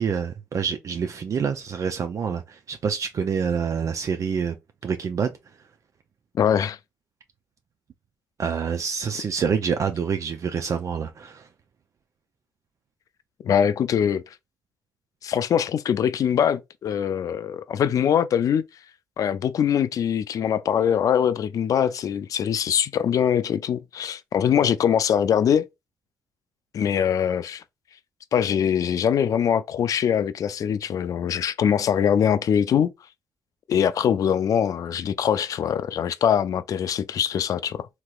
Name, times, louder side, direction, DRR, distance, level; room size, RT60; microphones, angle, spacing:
voice 1, 0.0-4.6 4.8-5.3 8.4-11.5, right 6 dB, 55° right, 0.4 m, -27 dB
voice 2, 6.3-6.8 13.4-14.2 15.2-18.6 19.2-25.7 26.7-27.6 28.3-32.9 33.7-37.9, left 8 dB, 60° left, 0.3 m, -22 dB
3.0 x 2.9 x 2.3 m
supercardioid pair, 50°, 7 cm